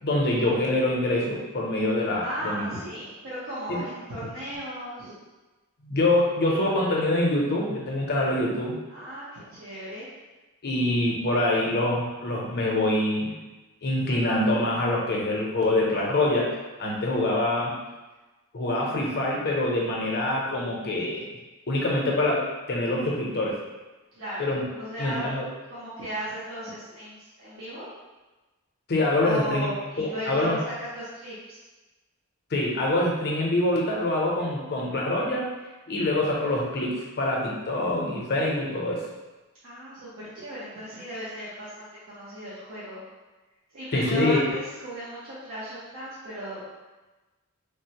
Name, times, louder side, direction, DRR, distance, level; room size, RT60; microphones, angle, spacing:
voice 1, 0.0-2.6 3.7-3.8 5.8-8.8 10.6-13.3 13.8-17.7 18.5-21.3 21.7-23.6 24.4-24.6 25.0-25.5 28.9-29.7 30.0-30.6 32.5-35.5 35.9-39.0 43.9-44.5, left 1 dB, 50° left, -2 dB, 0.6 m, -25 dB
voice 2, 2.2-5.1 8.9-10.1 24.1-25.3 25.6-27.9 29.2-31.6 39.6-43.0 43.7-46.7, equal, 65° right, -9 dB, 0.7 m, -36 dB
3.3 x 2.0 x 2.8 m, 1.1 s
head